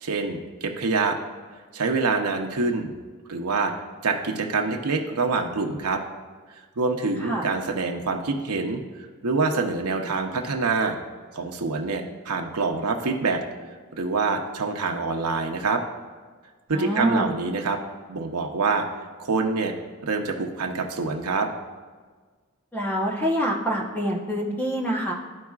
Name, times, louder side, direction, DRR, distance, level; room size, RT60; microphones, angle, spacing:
voice 1, 0.0-1.2 1.7-2.9 3.3-3.7 4.0-6.0 6.8-8.8 9.2-11.0 11.3-13.4 13.9-15.8 16.7-17.8 18.1-18.8 19.2-19.7 20.0-21.5, right 4 dB, 90° right, 2 dB, 0.8 m, -25 dB
voice 2, 16.7-17.3 22.7-25.1, right 1 dB, 10° left, -1 dB, 0.9 m, -25 dB
13.0 x 4.7 x 2.4 m, 1.5 s
head